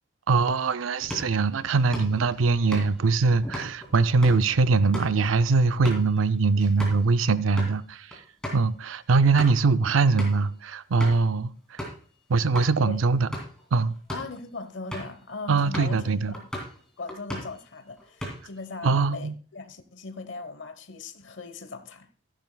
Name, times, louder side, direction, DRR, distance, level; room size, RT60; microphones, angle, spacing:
voice 1, 0.3-8.1 8.5-11.8 12.3-13.3 13.7-13.9 15.5-16.3 18.8-19.3, right 4 dB, 85° right, 0.5 m, -22 dB
sound 1, 1.0-7.1 7.4-7.7 8.1-8.2 8.4-8.6 9.1-9.7 10.2-10.5 11.0-11.3 11.8-12.0 12.5-12.7 13.2-13.6 14.0-14.3 14.9-15.2 15.7-16.0 16.3-16.8 17.1-17.6 18.0-18.6, equal, 5° left, 2.6 m, -37 dB
voice 2, 14.1-16.1 17.0-22.1, left 3 dB, 75° left, 0.9 m, -39 dB
14.0 x 10.5 x 2.2 m
head